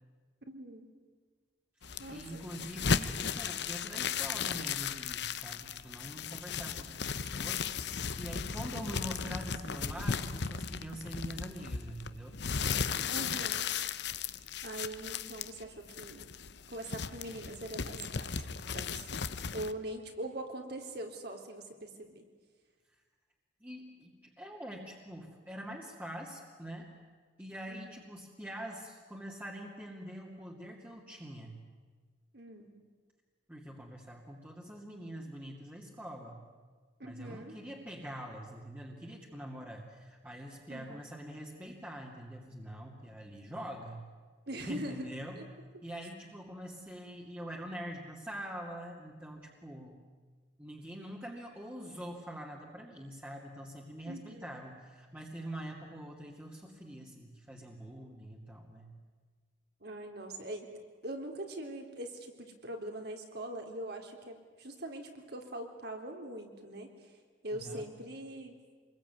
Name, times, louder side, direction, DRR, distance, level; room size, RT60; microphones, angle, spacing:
voice 1, 0.5-0.9 2.0-2.4 13.1-13.7 14.6-16.3 16.7-22.2 27.7-27.9 32.3-32.8 37.0-37.6 40.7-41.1 44.5-45.1 45.4-45.5 54.0-54.5 59.8-60.7 61.0-66.9 67.4-68.5, right 1 dB, 60° right, 3 dB, 3.7 m, -42 dB
sound 1, 1.8-19.7, left 6 dB, 65° left, 0.9 m, -36 dB
voice 2, 1.8-7.8 8.2-12.3 22.9-23.0 23.6-26.9 27.4-31.6 33.5-36.5 37.0-44.0 44.7-45.4 45.8-50.0 50.6-58.9 67.5-67.9, equal, 10° right, -3 dB, 2.4 m, -44 dB
26.5 x 21.5 x 9.4 m, 1.5 s
head